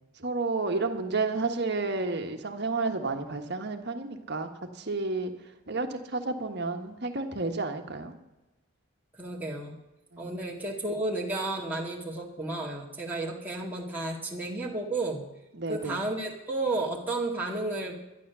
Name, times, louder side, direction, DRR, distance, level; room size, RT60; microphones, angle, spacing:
voice 1, 0.2-5.3 5.7-8.1 10.1-10.4 15.5-16.0, right 3 dB, 50° right, 6 dB, 1.5 m, -31 dB
voice 2, 9.2-9.8 10.2-15.3 15.7-18.0, right 2 dB, 10° right, -3 dB, 1.9 m, -32 dB
12.5 x 10.5 x 6.9 m, 1.0 s
head